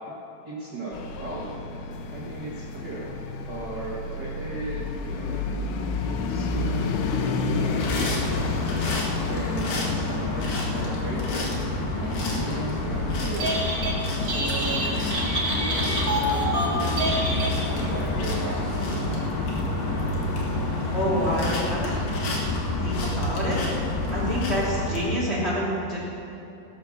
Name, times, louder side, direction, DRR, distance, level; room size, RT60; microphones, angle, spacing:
voice 1, 0.4-1.6 2.1-3.1 3.5-5.4 5.8-8.6 9.2-11.5 11.9-13.7 14.2-19.1, right 2 dB, 85° right, -8 dB, 0.9 m, -37 dB
sound 1, 0.9-18.8, left 3 dB, 90° left, 3.3 m, -33 dB
sound 2, 7.7-25.0, left 2 dB, 55° left, 2.7 m, -28 dB
Telephone, 13.2-14.0 14.2-17.9, right 1 dB, 45° right, 1.1 m, -27 dB
voice 2, 20.9-21.9 22.8-23.7 24.1-26.0, equal, 15° left, -7 dB, 2.4 m, -27 dB
17.0 x 7.0 x 6.6 m, 2.9 s
omnidirectional pair, 5.4 m